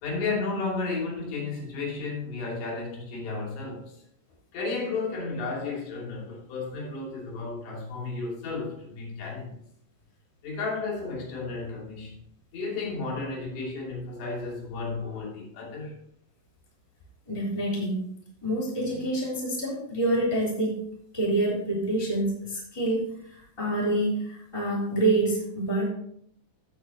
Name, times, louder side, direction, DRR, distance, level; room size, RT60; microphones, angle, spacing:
voice 1, 0.0-4.0 4.5-9.6 10.4-12.2 12.5-16.0, left 3 dB, 85° left, -2 dB, 4.9 m, -33 dB
voice 2, 17.3-18.1 18.4-20.8 21.1-23.2 23.6-25.9, right 1 dB, 10° left, -6 dB, 3.0 m, -27 dB
16.0 x 6.5 x 2.9 m, 0.67 s
omnidirectional pair, 4.8 m